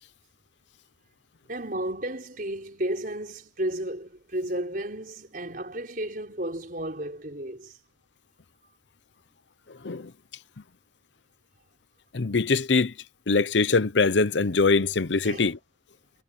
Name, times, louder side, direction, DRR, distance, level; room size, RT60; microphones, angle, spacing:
voice 1, 1.5-7.8 15.2-15.5, right 1 dB, 50° right, 5.5 m, -33 dB
voice 2, 12.1-12.9 13.3-15.6, left 4 dB, 80° left, 0.8 m, -23 dB
head